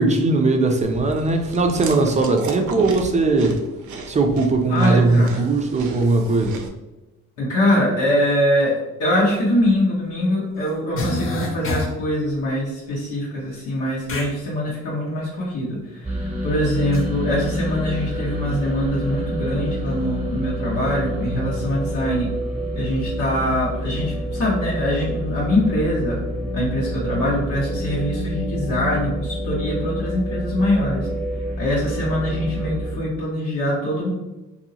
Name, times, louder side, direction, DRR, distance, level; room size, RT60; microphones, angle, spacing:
voice 1, 0.0-3.6 4.1-6.6, right 3 dB, 25° right, 4 dB, 0.5 m, -19 dB
Chewing mastication, 0.8-6.7, right 4 dB, 80° right, 0.5 m, -36 dB
voice 2, 4.7-5.4 7.4-22.3 22.7-26.2 26.5-31.1 31.6-34.1, left 1 dB, 85° left, -7 dB, 1.1 m, -23 dB
sound 1, 9.3-9.4 10.6-10.7 11.0-12.1 14.1-14.3 16.9-17.0, left 2 dB, 45° left, 0.7 m, -27 dB
sound 2, 16.0-32.9, equal, 5° right, 1.1 m, -28 dB
2.8 x 2.7 x 2.7 m, 1.1 s
cardioid pair, 90°, 30 cm